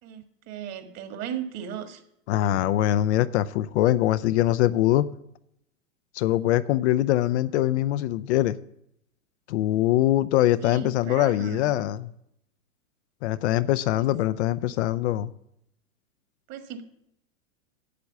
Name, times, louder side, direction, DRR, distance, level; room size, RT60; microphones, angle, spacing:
voice 1, 0.0-2.0 10.6-11.8 14.0-14.1 14.6-14.8 16.5-16.8, right 8 dB, 40° right, 8 dB, 1.7 m, -37 dB
voice 2, 2.3-5.1 6.1-8.6 9.5-12.1 13.2-15.3, left 14 dB, 55° left, 14 dB, 0.6 m, -23 dB
8.3 x 7.9 x 7.2 m, 0.77 s
hypercardioid pair, 110°, 40 cm